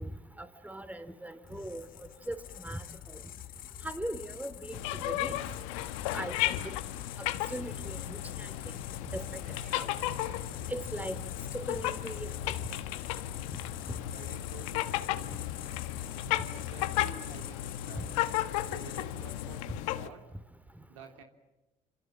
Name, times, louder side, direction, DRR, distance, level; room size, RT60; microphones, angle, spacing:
voice 1, 0.0-3.2 3.8-5.4 6.1-6.7 7.5-8.5 9.1-9.4 9.7-9.9 10.7-11.2 11.5-12.6 13.5-13.6 18.0-18.1, right 1 dB, 10° right, 10 dB, 3.5 m, -40 dB
sound 1, 1.5-19.8, left 13 dB, 60° left, 1.2 m, -44 dB
sound 2, 4.7-20.1, left 14 dB, 80° left, 1.3 m, -35 dB
sound 3, 9.4-11.5 17.0-17.1 19.0-19.1, right 5 dB, 60° right, 5.1 m, -59 dB
voice 2, 14.1-15.6 16.1-18.1 18.7-19.6 20.0-20.2 20.9-21.2, right 6 dB, 90° right, 4 dB, 3.2 m, -50 dB
27.5 x 27.5 x 7.5 m, 1.1 s
hypercardioid pair, 65°, 16 cm